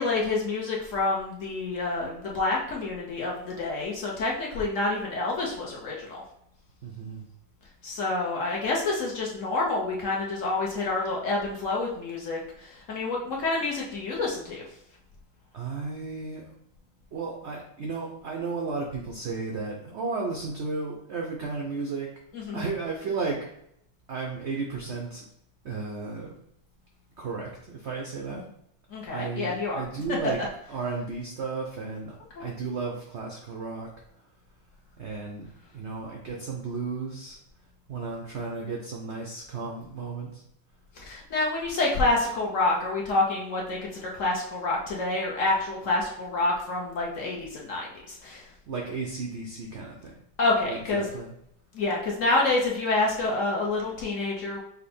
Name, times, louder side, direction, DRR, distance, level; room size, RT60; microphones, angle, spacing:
voice 1, 0.0-6.2 7.8-14.6 22.3-22.6 28.9-29.8 32.4-32.5 41.0-48.4 50.4-51.0 51.7-54.6, left 2 dB, 55° left, -3 dB, 0.9 m, -28 dB
voice 2, 6.8-7.2 15.5-16.5 17.1-22.1 22.5-23.4 24.1-25.2 25.6-26.3 27.2-28.5 29.1-30.4 30.7-32.1 32.4-33.9 35.0-35.5 35.7-37.4 37.9-40.4 48.7-50.1 50.6-51.4, right 4 dB, 75° right, 0 dB, 0.6 m, -34 dB
5.5 x 2.1 x 4.2 m, 0.74 s
omnidirectional pair, 2.0 m